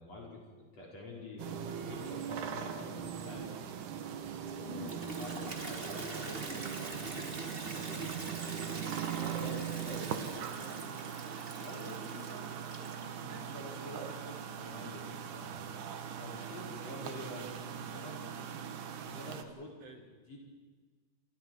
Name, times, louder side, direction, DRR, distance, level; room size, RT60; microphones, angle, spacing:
voice 1, 0.0-3.6 4.4-8.5 9.2-10.3 11.6-12.5 13.3-15.5 16.2-17.5 17.8-18.2 19.0-20.4, left 1 dB, 55° left, -3 dB, 5.7 m, -48 dB
sound 1, 1.4-19.4, right 8 dB, 80° right, 2.8 m, -41 dB
Toilet flush, 4.7-13.2, right 3 dB, 30° right, 1.1 m, -44 dB
voice 2, 5.8-6.1 9.1-11.4 13.2-13.9 17.1-17.2 17.7-18.1 18.4-18.7 19.8-20.0, right 4 dB, 50° right, 4 dB, 3.0 m, -51 dB
28.0 x 28.0 x 4.7 m, 1.4 s
omnidirectional pair, 3.5 m